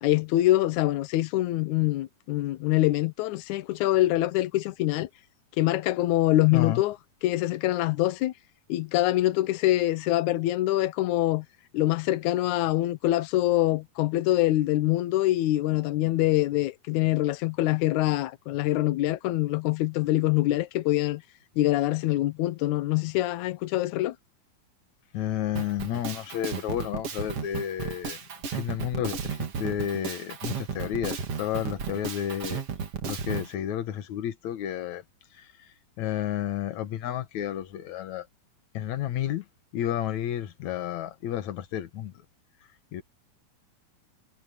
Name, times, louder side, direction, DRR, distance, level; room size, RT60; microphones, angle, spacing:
voice 1, 0.0-5.1 5.6-7.0 7.2-8.3 8.7-11.4 11.7-21.2 21.6-24.1, left 16 dB, 80° left, 1.7 m, -24 dB
voice 2, 25.1-28.2 28.5-32.6 33.1-35.0 36.0-38.2 38.7-39.4 39.7-42.1 42.9-43.0, left 11 dB, 60° left, 2.3 m, -31 dB
Drum kit, 25.5-33.5, right 6 dB, 45° right, 2.6 m, -34 dB
omnidirectional pair, 4.3 m